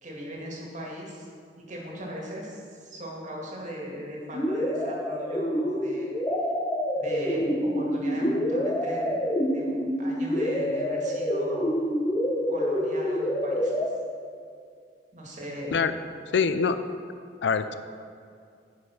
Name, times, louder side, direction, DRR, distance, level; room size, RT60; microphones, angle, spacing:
voice 1, 0.0-1.3 1.7-6.2 7.0-9.2 9.5-11.7 12.5-13.8 15.1-15.8, equal, 45° right, -3 dB, 2.0 m, -38 dB
sound 1, 4.3-13.9, equal, 20° left, 0.7 m, -27 dB
voice 2, 16.3-16.8 17.4-17.8, left 5 dB, 80° left, 11 dB, 0.5 m, -24 dB
9.8 x 5.4 x 5.7 m, 2.2 s
head